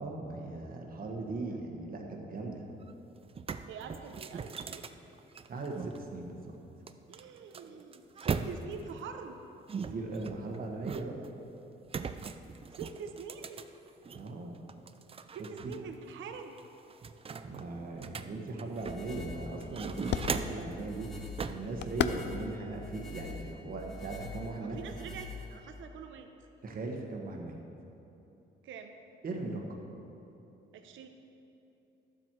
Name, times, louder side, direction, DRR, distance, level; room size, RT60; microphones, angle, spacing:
voice 1, 0.0-2.6 5.5-6.5 9.8-11.1 14.1-14.6 15.6-15.7 17.4-24.8 26.6-27.5 29.2-29.6, right 3 dB, 45° right, 1 dB, 1.4 m, -39 dB
sound 1, 2.8-2.9 3.2-6.0 6.9-8.9 9.7-11.3 11.9-14.3 14.7-15.8 16.1-16.2 16.6-19.2 19.6-20.7 21.4-21.7, right 5 dB, 30° right, 0.4 m, -39 dB
voice 2, 3.7-4.8 7.1-9.4 12.7-13.7 15.3-16.6 24.6-26.3 28.6-28.9 30.7-31.1, right 6 dB, 75° right, 6 dB, 0.8 m, -45 dB
sound 2, 17.9-24.2, left 9 dB, 60° left, 0.5 m, -40 dB
sound 3, 18.8-25.8, left 2 dB, ahead, 1.5 m, -45 dB
12.0 x 7.6 x 4.6 m, 2.9 s
cardioid pair, 90°, 20 cm